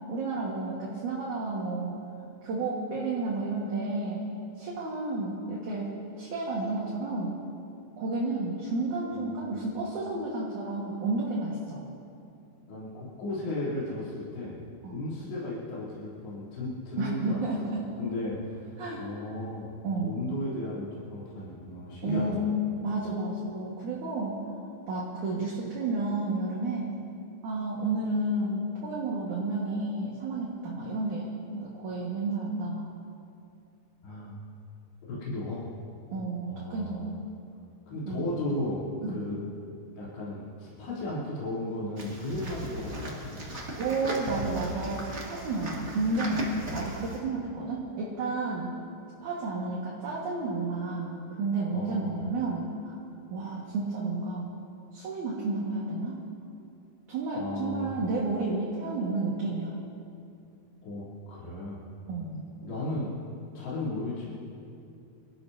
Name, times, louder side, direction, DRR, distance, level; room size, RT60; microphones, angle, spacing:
voice 1, 0.1-2.0 2.4-4.2 4.6-7.4 8.0-11.8 14.8-15.0 17.0-17.9 18.8-19.1 19.8-20.2 22.0-22.4 22.8-24.4 24.9-27.0 27.4-31.3 31.5-32.9 36.1-37.2 38.0-38.3 39.0-39.2 43.8-48.7 49.2-53.0 53.3-54.5 54.9-56.2 57.1-59.8 62.1-62.4, right 3 dB, 55° right, -5 dB, 2.7 m, -31 dB
voice 2, 9.1-9.7 12.7-12.9 13.2-14.6 14.9-17.4 18.0-22.4 34.0-34.4 35.1-35.7 36.4-37.0 37.9-39.4 40.0-43.5 51.7-52.2 57.3-58.0 60.8-61.0 61.3-61.8 62.6-63.2 63.5-64.3, left 1 dB, 85° left, -9 dB, 5.6 m, -35 dB
sound 1, 42.0-47.2, right 1 dB, 35° right, 1.0 m, -37 dB
26.5 x 14.0 x 2.8 m, 2.6 s
omnidirectional pair, 4.8 m